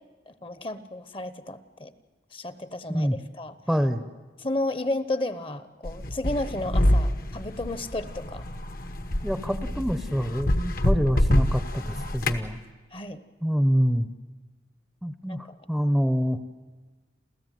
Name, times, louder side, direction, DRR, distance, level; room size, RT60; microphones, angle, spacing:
voice 1, 0.3-1.9 2.3-3.5 4.4-8.5 12.9-13.2 15.3-15.6, left 2 dB, 30° left, 13 dB, 1.0 m, -32 dB
voice 2, 3.7-4.0 9.2-12.6 13.4-14.1 15.0-16.4, equal, ahead, 10 dB, 0.8 m, -26 dB
sound 1, 5.9-12.5, left 1 dB, 50° left, 1.2 m, -26 dB
29.0 x 14.5 x 9.3 m, 1.3 s
head